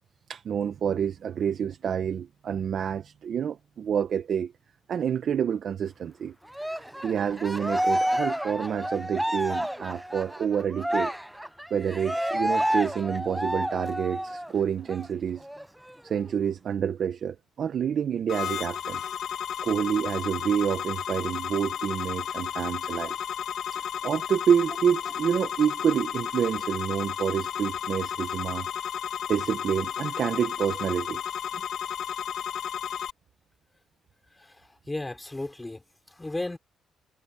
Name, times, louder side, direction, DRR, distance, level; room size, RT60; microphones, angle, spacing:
voice 1, 0.3-4.5 4.9-6.3 7.0-11.1 11.7-15.5 16.0-19.0 19.6-23.2 23.7-28.7 29.3-31.2, right 8 dB, 60° right, 1.0 m, -28 dB
Cheering, 6.5-14.5 14.9-15.1 15.4-16.4, equal, 5° right, 0.8 m, -29 dB
sound 1, 18.3-33.1, left 9 dB, 65° left, 2.1 m, -33 dB
voice 2, 34.9-35.8 36.1-36.6, left 2 dB, 15° left, 5.9 m, -34 dB
cardioid pair, 90°, 0 cm